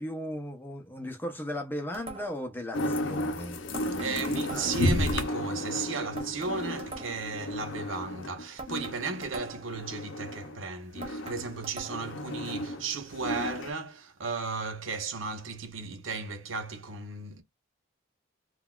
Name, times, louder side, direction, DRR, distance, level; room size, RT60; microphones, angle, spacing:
voice 1, 0.0-4.7, equal, 10° left, 0.6 m, -37 dB
sound 1, 1.9-2.5 3.7-5.0 6.2-7.4 8.6-9.8 11.0-12.2, right 3 dB, 30° right, 0.8 m, -43 dB
sound 2, 2.7-10.6 11.0-13.7, left 1 dB, 65° left, 0.6 m, -33 dB
voice 2, 4.0-17.4, right 4 dB, 75° right, 0.7 m, -35 dB
3.8 x 2.3 x 2.3 m
head